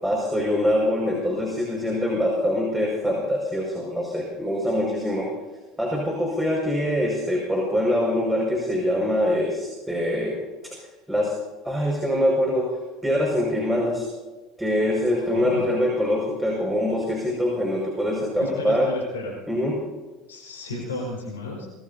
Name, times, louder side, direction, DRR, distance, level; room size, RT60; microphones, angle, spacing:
voice 1, 0.0-5.3 5.8-10.4 10.6-10.8 11.1-11.3 11.6-12.8 13.0-14.1 14.6-18.9 19.5-19.8, left 1 dB, 5° right, -2 dB, 5.8 m, -24 dB
voice 2, 15.2-15.7 18.4-19.4 20.3-21.7, left 2 dB, 85° left, -1 dB, 5.2 m, -33 dB
25.0 x 20.5 x 2.8 m, 1.2 s
hypercardioid pair, 70°, 0 cm